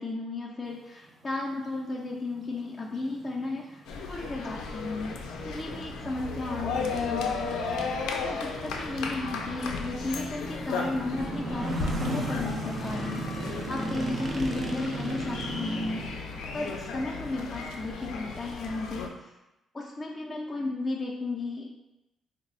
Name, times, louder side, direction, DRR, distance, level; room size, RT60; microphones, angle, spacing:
voice 1, 0.0-5.2 5.4-7.5 8.2-16.1 16.5-19.4 19.7-21.6, left 2 dB, 20° left, -4 dB, 0.4 m, -34 dB
sound 1, 1.7-1.8 2.3-18.8, right 2 dB, 40° right, 0.4 m, -38 dB
sound 2, 3.9-19.1, left 4 dB, 85° left, 0.3 m, -35 dB
2.9 x 2.0 x 3.8 m, 0.94 s
cardioid pair, 90°, 0 cm